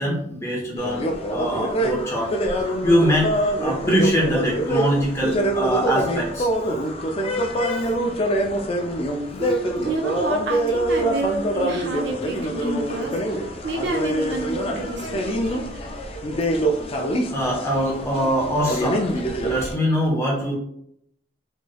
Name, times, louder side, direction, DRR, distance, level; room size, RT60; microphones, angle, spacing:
voice 1, 0.0-2.3 2.8-3.3 3.6-6.5 17.3-19.0 19.4-20.5, equal, 15° left, -3 dB, 0.8 m, -22 dB
sound 1, 0.8-19.7, right 1 dB, 30° left, 0.4 m, -25 dB
voice 2, 9.4-15.8, right 2 dB, 75° right, 2 dB, 0.6 m, -29 dB
3.1 x 3.0 x 2.2 m, 0.73 s
head